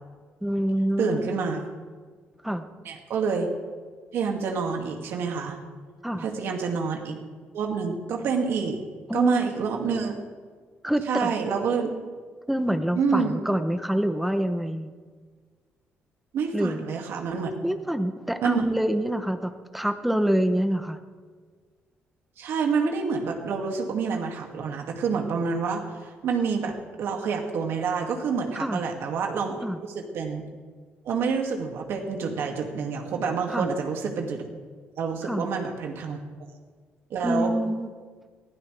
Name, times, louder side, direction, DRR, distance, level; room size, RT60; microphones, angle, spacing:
voice 1, 0.4-1.3 2.4-2.7 6.0-6.3 9.1-9.4 10.8-11.3 12.5-14.9 16.5-16.9 17.6-21.0 28.5-28.8 29.6-29.8 33.5-33.7 35.2-35.4 37.2-37.9, equal, 5° right, 8 dB, 0.8 m, -26 dB
voice 2, 1.0-1.7 2.8-3.5 4.1-5.6 6.2-7.2 7.5-8.8 9.1-10.1 11.1-11.9 13.0-13.4 16.3-17.5 18.4-18.6 22.4-29.6 29.9-30.4 31.0-34.5 35.0-36.2 37.1-37.5, right 5 dB, 65° right, 2 dB, 2.3 m, -27 dB
22.0 x 15.5 x 3.4 m, 1.6 s
cardioid pair, 175°, 4 cm